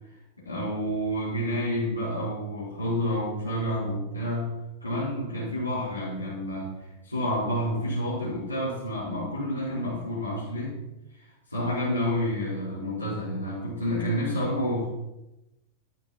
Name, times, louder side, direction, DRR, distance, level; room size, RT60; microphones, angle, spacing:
voice 1, 0.4-10.7 11.1-14.9, equal, 85° left, -9 dB, 4.8 m, -29 dB
14.0 x 13.0 x 4.4 m, 0.95 s
figure-of-eight pair, 90°, 0 cm